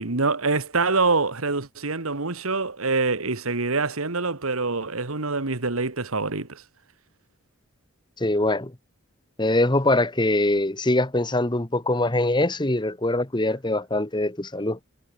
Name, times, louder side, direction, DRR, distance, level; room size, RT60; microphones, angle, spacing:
voice 1, 0.0-6.6, right 3 dB, 80° right, 1.9 m, -25 dB
voice 2, 8.2-8.7 9.4-14.8, left 2 dB, 20° left, 1.3 m, -23 dB
head